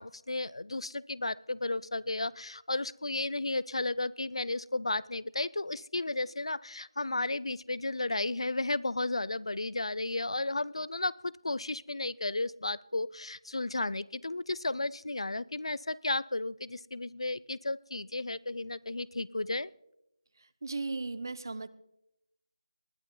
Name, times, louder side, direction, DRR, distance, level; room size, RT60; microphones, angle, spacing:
voice 1, 0.0-19.7, left 2 dB, 80° left, 21 dB, 0.5 m, -33 dB
voice 2, 20.4-21.7, right 3 dB, 45° right, 16 dB, 0.7 m, -37 dB
20.0 x 12.0 x 3.9 m, 0.83 s
figure-of-eight pair, 175°, 3 cm